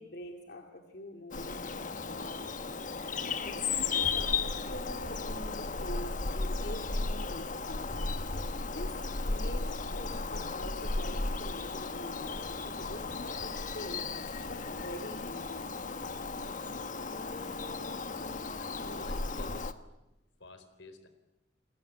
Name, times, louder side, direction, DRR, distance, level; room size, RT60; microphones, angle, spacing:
voice 1, 0.0-2.5 3.2-8.1 8.6-12.4 12.6-14.1 14.4-15.7, left 1 dB, 60° left, 3 dB, 2.4 m, -45 dB
Bird vocalization bird call bird song, 1.3-19.7, left 4 dB, 45° left, 1.3 m, -35 dB
voice 2, 17.3-17.9 18.6-19.7 20.4-21.1, left 2 dB, 80° left, 10 dB, 4.3 m, -50 dB
29.0 x 20.5 x 9.5 m, 0.94 s
head